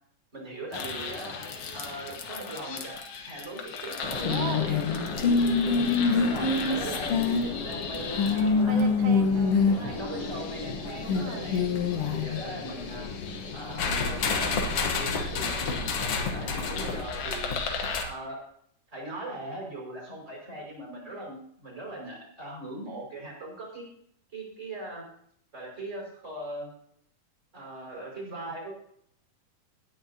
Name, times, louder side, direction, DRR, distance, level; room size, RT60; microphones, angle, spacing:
voice 1, 0.3-1.4 1.7-2.9 3.2-4.8 5.4-8.8 9.7-11.6 12.1-13.1 13.5-15.6 16.1-17.6 18.0-18.4 18.9-23.8 24.3-25.0 25.5-26.7 27.5-28.7, right 1 dB, 20° right, -2 dB, 5.6 m, -39 dB
sound 1, 0.7-18.0, left 4 dB, 55° left, 1.8 m, -28 dB
voice 2, 4.3-4.8 5.2-5.6 8.6-9.7 11.0-11.6 15.6-15.9, right 6 dB, 65° right, 5 dB, 2.4 m, -38 dB
18.0 x 9.9 x 2.8 m, 0.67 s
omnidirectional pair, 3.9 m